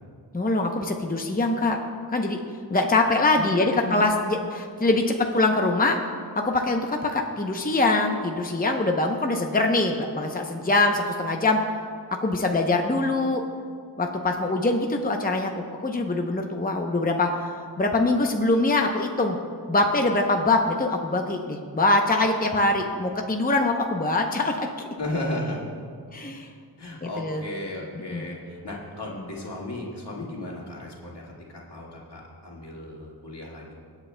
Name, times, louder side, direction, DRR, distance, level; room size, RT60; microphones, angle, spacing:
voice 1, 0.3-1.8 2.1-2.4 2.7-6.0 6.3-11.6 12.2-13.4 14.0-19.4 19.7-24.7 26.1-26.5 27.0-27.4 28.1-28.3, left 2 dB, 20° left, 3 dB, 0.7 m, -23 dB
voice 2, 3.3-4.0 25.0-25.6 26.8-33.7, left 1 dB, 70° left, -4 dB, 2.0 m, -34 dB
23.0 x 8.2 x 2.2 m, 2.1 s
wide cardioid pair, 45°, 41 cm